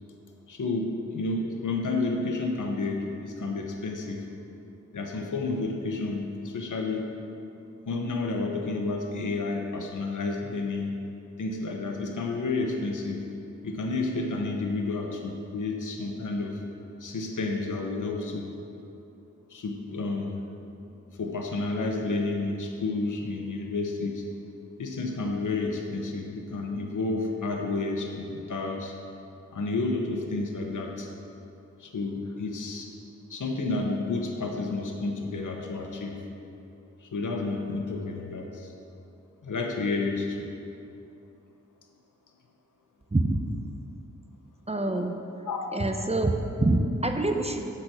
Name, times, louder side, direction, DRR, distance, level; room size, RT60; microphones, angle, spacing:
voice 1, 0.5-4.2 4.9-7.1 7.9-10.9 11.4-13.2 13.6-16.6 17.0-18.5 19.5-20.4 21.2-24.2 24.8-28.9 29.5-31.1 31.8-32.9 33.3-36.2 37.0-38.7 39.4-40.5 45.4-45.7, left 3 dB, 75° left, 2 dB, 1.0 m, -30 dB
voice 2, 44.7-45.2 45.7-47.7, right 2 dB, 20° right, 4 dB, 0.8 m, -26 dB
8.2 x 7.6 x 6.4 m, 2.7 s
wide cardioid pair, 60°, 31 cm